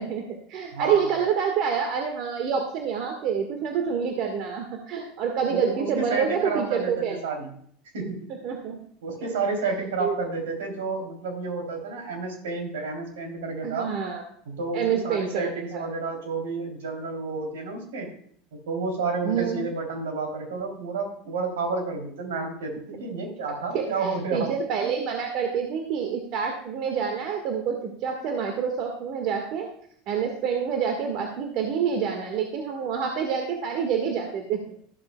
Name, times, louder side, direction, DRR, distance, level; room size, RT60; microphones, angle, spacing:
voice 1, 0.0-7.2 8.4-8.8 9.2-9.3 10.0-10.1 13.6-14.2 14.7-15.9 19.2-19.6 23.7-29.7 30.1-34.8, right 7 dB, 55° right, 3 dB, 1.7 m, -27 dB
voice 2, 0.7-1.0 5.5-7.5 7.9-8.3 9.0-13.9 14.4-18.1 18.5-24.5 24.8-24.9, right 4 dB, 75° right, 2 dB, 3.3 m, -30 dB
13.5 x 12.0 x 2.3 m, 0.63 s
hypercardioid pair, 80°, 0 cm